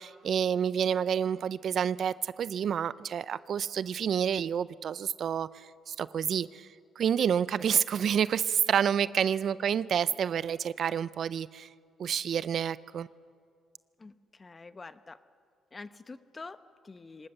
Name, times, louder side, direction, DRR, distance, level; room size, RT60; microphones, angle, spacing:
voice 1, 0.0-6.7 7.0-11.7 12.0-13.1, right 8 dB, 55° right, 17 dB, 0.5 m, -29 dB
voice 2, 14.0-15.2 15.7-17.3, left 3 dB, 25° left, 12 dB, 0.9 m, -47 dB
24.5 x 19.0 x 6.6 m, 2.1 s
cardioid pair, 100°, 0 cm